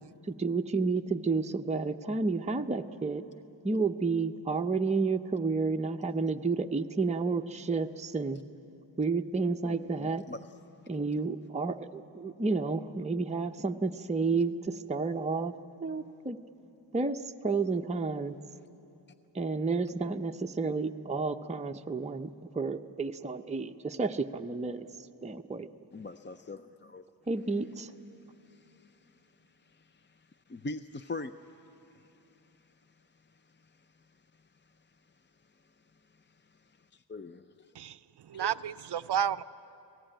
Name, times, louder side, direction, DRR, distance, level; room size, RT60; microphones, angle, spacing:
voice 1, 0.3-3.2 3.6-8.4 9.0-10.2 10.9-15.5 15.8-16.4 16.9-18.4 19.3-22.3 22.5-24.9 25.2-25.7 27.3-27.9, right 4 dB, 15° right, 0.6 m, -31 dB
voice 2, 9.6-10.5 25.9-27.0 28.4-29.2 29.6-32.6 33.3-33.9 36.3-37.7 38.3-38.4, left 2 dB, 25° left, 0.5 m, -44 dB
voice 3, 38.3-39.4, right 9 dB, 65° right, 0.5 m, -31 dB
26.5 x 18.0 x 9.0 m
wide cardioid pair, 95°, 44 cm